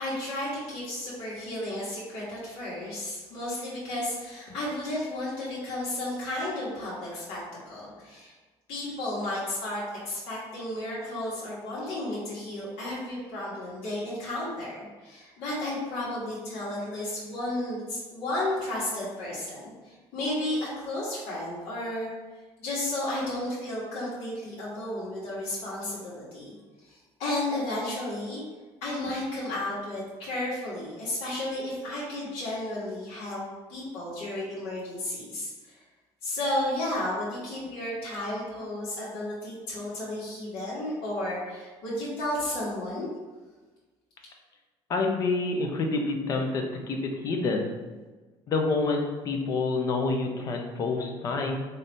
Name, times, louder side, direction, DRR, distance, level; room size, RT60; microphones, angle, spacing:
voice 1, 0.0-7.4 7.6-8.3 8.7-22.1 22.6-26.6 26.8-28.4 28.8-33.4 33.7-35.8 36.2-43.1, left 1 dB, 75° left, -8 dB, 1.3 m, -33 dB
voice 2, 44.9-47.0 47.2-47.7 48.5-51.6, left 3 dB, 35° left, 3 dB, 0.5 m, -27 dB
3.9 x 2.7 x 3.4 m, 1.3 s
cardioid pair, 170°, 10 cm